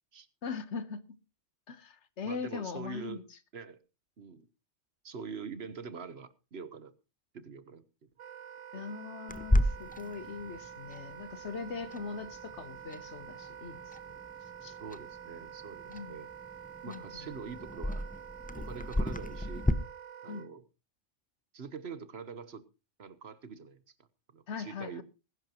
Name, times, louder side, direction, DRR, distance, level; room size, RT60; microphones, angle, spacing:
voice 1, 0.4-1.0 1.7-3.2 8.7-14.0 14.6-14.8 15.9-16.2 16.9-17.3 20.3-20.5 24.5-25.0, left 5 dB, 75° left, 1.4 m, -40 dB
voice 2, 2.2-3.2 3.5-3.8 4.2-4.5 5.0-6.9 7.3-8.1 8.7-8.8 9.9-10.0 14.8-16.3 16.8-18.0 18.6-19.7 20.2-20.6 21.5-22.7 23.0-23.8 24.3-25.0, right 5 dB, 60° right, 1.3 m, -44 dB
Wind instrument woodwind instrument, 8.2-20.5, right 9 dB, 85° right, 1.2 m, -48 dB
Clock, 9.3-19.7, left 1 dB, 10° left, 0.4 m, -35 dB
20.5 x 11.0 x 3.0 m
omnidirectional pair, 1.2 m